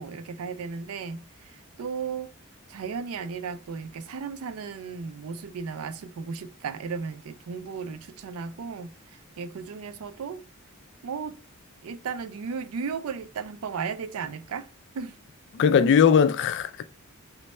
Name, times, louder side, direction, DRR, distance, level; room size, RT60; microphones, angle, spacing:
voice 1, 0.0-2.3 2.7-10.4 11.0-11.4 11.8-14.7 14.9-15.2, right 5 dB, 80° right, 0.4 m, -35 dB
voice 2, 15.5-16.8, left 7 dB, 55° left, 0.3 m, -19 dB
3.1 x 2.2 x 4.1 m
head